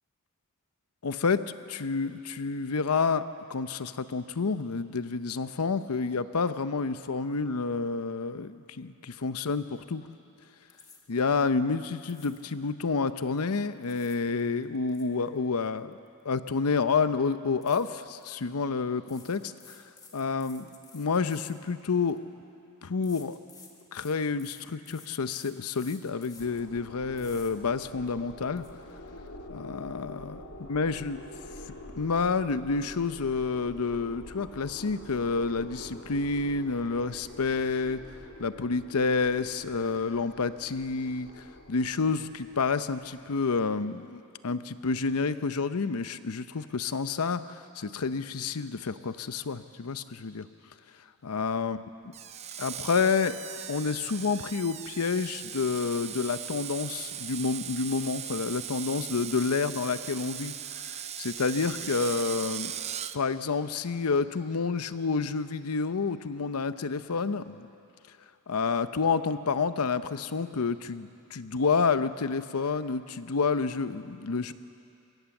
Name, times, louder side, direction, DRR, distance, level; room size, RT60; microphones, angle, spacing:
voice 1, 1.0-10.1 11.1-16.0 16.2-19.8 20.1-22.2 22.8-23.4 23.9-28.7 29.5-31.2 32.0-38.0 38.4-50.5 51.2-51.8 52.6-53.4 53.7-62.8 63.1-67.7 68.5-74.5, left 4 dB, 85° left, 12 dB, 0.7 m, -29 dB
sound 1, 10.7-11.3 12.0-12.6 13.6-14.3 14.6-16.5 16.8-17.0 17.6-18.3 19.0-22.2 23.0-26.7 27.2-27.5 28.0-28.1 28.4-28.7, left 4 dB, 15° left, 1.8 m, -53 dB
sound 2, 26.4-43.7, left 1 dB, 70° left, 2.1 m, -47 dB
Screech, 52.1-63.2, right 10 dB, 30° right, 0.5 m, -39 dB
22.0 x 17.5 x 7.2 m, 2.6 s
head